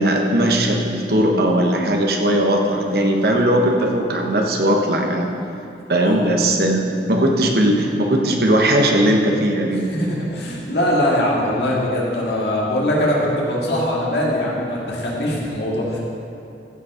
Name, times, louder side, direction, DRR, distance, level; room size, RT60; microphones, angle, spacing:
voice 1, 0.0-5.3 5.9-9.9, right 1 dB, 60° right, 1 dB, 1.0 m, -18 dB
voice 2, 9.9-16.0, left 1 dB, 70° left, -4 dB, 2.2 m, -21 dB
14.5 x 5.3 x 4.9 m, 2.7 s
head